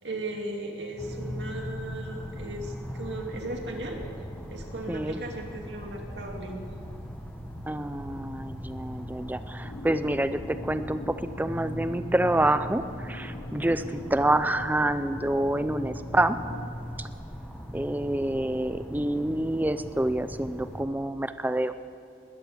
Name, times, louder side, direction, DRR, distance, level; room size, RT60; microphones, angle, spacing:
voice 1, 0.0-4.0 4.5-6.6, right 1 dB, 85° right, 1 dB, 2.4 m, -36 dB
sound 1, 1.0-20.8, equal, 5° left, 1.3 m, -39 dB
voice 2, 4.9-5.2 7.7-16.4 17.0-17.1 17.7-21.7, right 1 dB, 10° right, 11 dB, 0.5 m, -27 dB
sound 2, 9.6-16.7, left 2 dB, 70° left, 0.8 m, -44 dB
21.0 x 9.9 x 6.9 m, 2.6 s
head